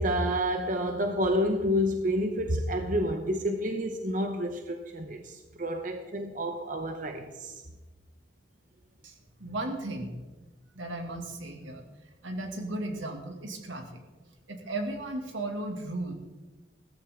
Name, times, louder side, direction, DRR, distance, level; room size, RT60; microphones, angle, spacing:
voice 1, 0.0-7.6, equal, 45° right, 0.9 m, -29 dB
voice 2, 9.4-10.1 10.7-11.8 12.2-14.0 14.5-16.1, right 2 dB, 85° right, 2.3 m, -35 dB
16.0 x 14.0 x 3.7 m
head